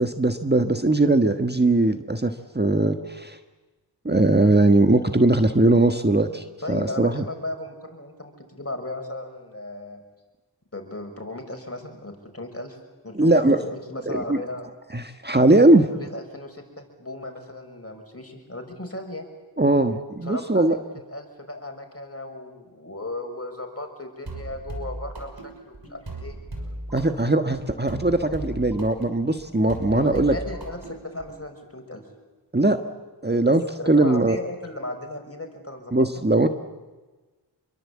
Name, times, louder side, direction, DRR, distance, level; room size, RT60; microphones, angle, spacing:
voice 1, 0.0-3.4 4.0-7.2 13.1-13.6 14.1-14.4 14.9-15.9 19.6-20.8 26.9-30.4 32.5-32.8 33.2-34.4 35.9-36.5, right 2 dB, 25° right, 7 dB, 1.5 m, -20 dB
voice 2, 6.6-10.0 10.7-12.8 13.0-14.7 15.7-19.3 20.2-26.4 29.9-32.1 33.5-35.9, left 1 dB, 35° left, 4 dB, 6.1 m, -36 dB
sound 1, 24.3-31.4, right 1 dB, 65° right, 6.0 m, -37 dB
27.0 x 23.0 x 8.6 m, 1.2 s
wide cardioid pair, 45°, 40 cm